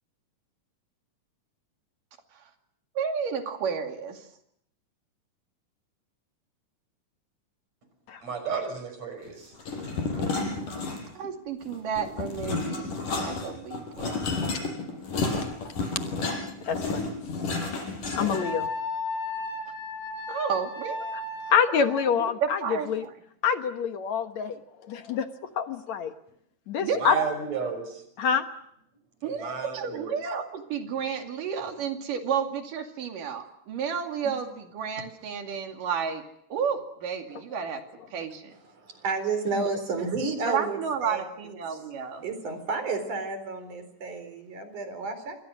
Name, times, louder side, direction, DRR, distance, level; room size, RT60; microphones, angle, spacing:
voice 1, 3.0-4.3 11.2-12.9 13.2-14.3 20.3-21.2 22.2-23.1 26.8-27.2 29.2-36.2 36.5-37.8 38.1-38.5 40.5-42.2, right 7 dB, 90° right, 4 dB, 4.0 m, -31 dB
voice 2, 8.2-9.5 27.0-28.0 29.2-30.1, right 5 dB, 55° right, 8 dB, 6.9 m, -33 dB
sound 1, 9.6-11.3 11.6-18.7, left 3 dB, 80° left, 6.1 m, -31 dB
voice 3, 16.7-17.2 18.1-18.7 21.5-23.1 23.4-25.3 25.6-26.1 26.7-27.2 28.2-28.4 39.6-39.7, left 7 dB, 65° left, 8 dB, 2.5 m, -26 dB
Wind instrument woodwind instrument, 18.3-22.1, left 3 dB, 50° left, 6.8 m, -34 dB
voice 4, 38.6-41.2 41.7-41.8 42.2-45.4, right 4 dB, 70° right, 9 dB, 5.7 m, -31 dB
28.0 x 24.5 x 6.4 m, 0.72 s
omnidirectional pair, 3.7 m